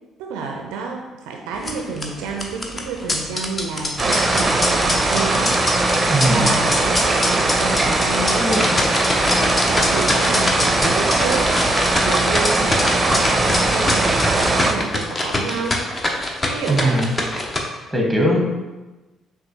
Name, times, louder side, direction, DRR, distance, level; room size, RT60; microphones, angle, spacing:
voice 1, 0.2-9.2 9.7-16.2 16.5-17.1, right 4 dB, 70° right, 2 dB, 0.4 m, -30 dB
sound 1, 1.5-17.6, left 1 dB, 30° left, 0.7 m, -25 dB
sound 2, 4.0-14.7, right 2 dB, 25° right, 0.6 m, -20 dB
voice 2, 6.1-6.5 16.7-17.1 17.9-18.4, right 1 dB, ahead, 0 dB, 1.1 m, -19 dB
6.0 x 2.5 x 2.6 m, 1.1 s
figure-of-eight pair, 45°, 0 cm